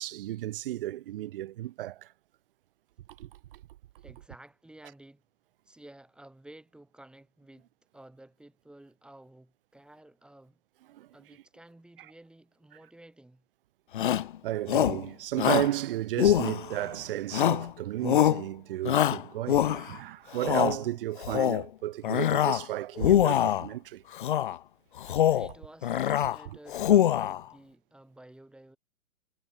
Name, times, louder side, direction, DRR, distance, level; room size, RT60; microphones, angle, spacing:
voice 1, 0.0-2.1 3.2-3.3 10.9-11.1 14.4-24.0, right 14 dB, 40° right, 1.1 m, -33 dB
voice 2, 4.0-5.2 5.6-7.7 7.9-10.6 11.1-13.4 25.3-28.8, right 1 dB, ahead, 6.3 m, -53 dB
Shout, 13.9-14.3 14.7-15.0 15.4-15.7 16.2-16.9 17.3-17.7 18.0-18.4 18.9-20.0 20.4-20.8 21.2-21.7 22.0-22.7 23.0-23.7 24.2-24.6 25.0-25.5 25.8-26.4 26.7-27.4, left 11 dB, 40° left, 0.4 m, -24 dB
hypercardioid pair, 165°, 41 cm